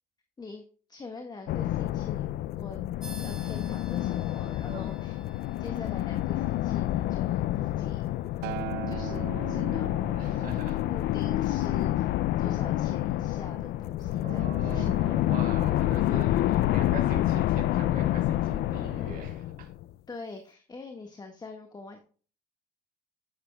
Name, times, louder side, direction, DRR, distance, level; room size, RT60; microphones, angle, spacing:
voice 1, 0.9-2.8 3.1-5.2 5.6-8.0 8.9-10.1 10.9-12.1 12.4-15.0 16.1-16.7 20.1-22.0, left 3 dB, 25° left, 4 dB, 1.6 m, -44 dB
sound 1, 1.5-19.9, left 14 dB, 70° left, 0.4 m, -28 dB
sound 2, 3.0-13.0, right 1 dB, 5° right, 3.1 m, -54 dB
Acoustic guitar, 8.4-12.7 13.6-13.7, right 16 dB, 85° right, 0.5 m, -41 dB
voice 2, 10.1-10.8 14.2-16.3 16.7-19.7, right 5 dB, 55° right, 2 dB, 2.3 m, -41 dB
10.5 x 9.2 x 2.3 m, 0.39 s
cardioid pair, 110°, 17 cm